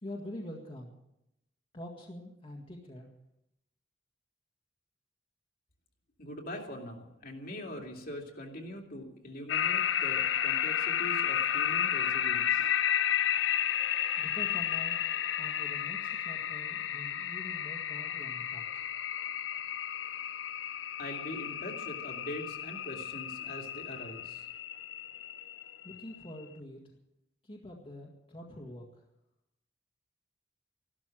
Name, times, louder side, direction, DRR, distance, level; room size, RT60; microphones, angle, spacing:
voice 1, 0.0-0.9 1.7-3.1 14.2-15.0 15.4-18.8 25.8-26.8 27.4-29.0, left 1 dB, 30° left, -1 dB, 1.9 m, -45 dB
voice 2, 6.2-12.7 21.0-24.5, left 1 dB, 50° left, 1 dB, 2.6 m, -43 dB
sound 1, 9.5-26.2, left 9 dB, 75° left, 0.6 m, -32 dB
14.5 x 12.5 x 7.6 m, 0.86 s
head